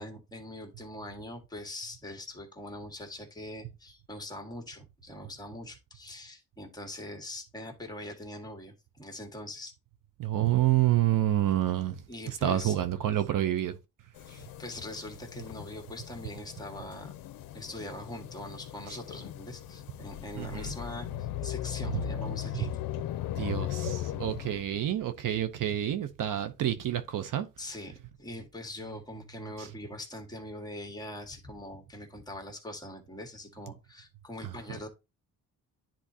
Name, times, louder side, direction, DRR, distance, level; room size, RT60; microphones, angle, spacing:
voice 1, 0.0-9.7 12.1-12.8 14.3-17.1 17.5-22.7 27.6-34.9, left 1 dB, 10° left, 1.7 m, -42 dB
voice 2, 10.2-11.9 12.4-13.7 20.4-20.7 23.4-27.5, right 12 dB, 65° right, 0.7 m, -28 dB
sound 1, 14.2-24.6, left 13 dB, 80° left, 0.6 m, -38 dB
10.0 x 3.9 x 2.8 m
cardioid pair, 100°, 35 cm